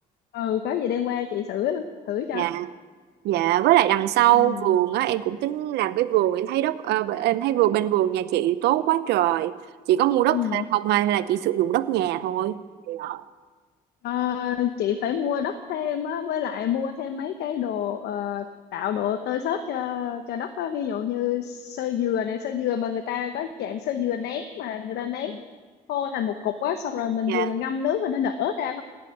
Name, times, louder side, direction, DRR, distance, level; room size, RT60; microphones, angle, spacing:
voice 1, 0.3-2.5 4.3-4.7 10.3-10.6 14.0-18.4 18.7-25.4 25.9-28.8, left 9 dB, 75° left, 8 dB, 1.0 m, -28 dB
voice 2, 2.3-2.7 3.2-9.5 9.9-12.6 12.9-13.2 27.3-27.5, right 13 dB, 80° right, 14 dB, 0.8 m, -22 dB
17.0 x 8.3 x 9.7 m, 1.4 s
cardioid pair, 110°, 17 cm